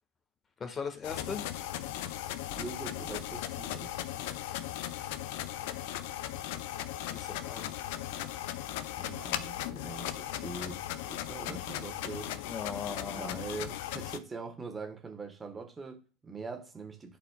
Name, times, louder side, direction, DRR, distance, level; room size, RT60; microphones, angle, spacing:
voice 1, 0.6-1.4 7.1-7.7 12.5-13.3, left 6 dB, 25° left, 1.4 m, -38 dB
sound 1, 1.0-14.2, left 12 dB, 60° left, 0.4 m, -37 dB
voice 2, 2.5-3.9 9.0-12.3 13.1-17.2, right 4 dB, 20° right, 1.4 m, -43 dB
11.5 x 4.2 x 2.3 m
figure-of-eight pair, 70°, 0 cm